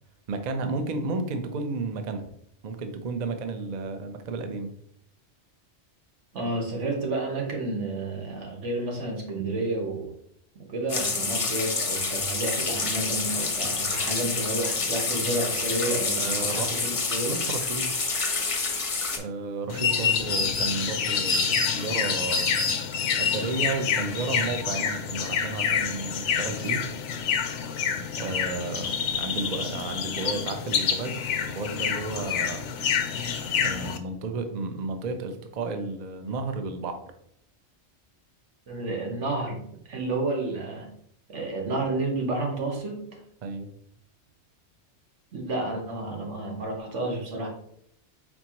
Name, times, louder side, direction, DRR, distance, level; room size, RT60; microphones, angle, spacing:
voice 1, 0.3-2.3 2.6-4.7 16.2-16.8 17.3-17.9 19.2-22.7 23.2-26.8 28.2-31.2 31.5-32.6 33.6-37.0 43.4-43.7, right 3 dB, 50° right, 7 dB, 0.6 m, -32 dB
voice 2, 6.3-10.1 10.7-17.4 38.7-40.9 41.3-43.2 45.3-47.5, right 2 dB, 90° right, 0 dB, 1.5 m, -30 dB
sound 1, 10.9-19.2, left 4 dB, 35° left, 0.6 m, -28 dB
sound 2, 19.7-34.0, left 6 dB, 85° left, 0.9 m, -27 dB
4.4 x 4.2 x 2.8 m, 0.69 s
omnidirectional pair, 1.2 m